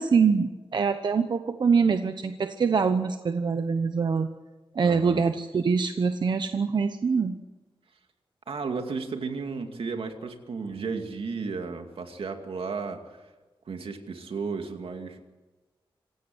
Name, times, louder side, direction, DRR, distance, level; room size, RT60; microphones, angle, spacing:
voice 1, 0.0-4.3 4.7-7.4, right 5 dB, 55° right, 8 dB, 0.9 m, -24 dB
voice 2, 4.8-5.2 8.5-13.2 13.7-15.2, right 4 dB, 80° right, 5 dB, 2.5 m, -34 dB
26.5 x 16.0 x 7.9 m, 1.2 s
wide cardioid pair, 175°, 9 cm